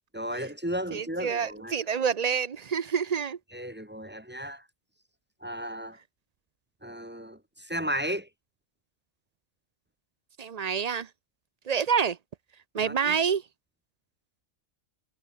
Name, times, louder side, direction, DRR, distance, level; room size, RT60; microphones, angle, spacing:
voice 1, 0.1-1.8 3.5-4.6 5.4-6.0 6.8-8.3 12.8-13.1, equal, 10° right, 1.4 m, -34 dB
voice 2, 0.9-3.4 10.4-11.1 11.7-12.2 12.7-13.4, right 7 dB, 50° right, 0.5 m, -27 dB
omnidirectional pair, 1.4 m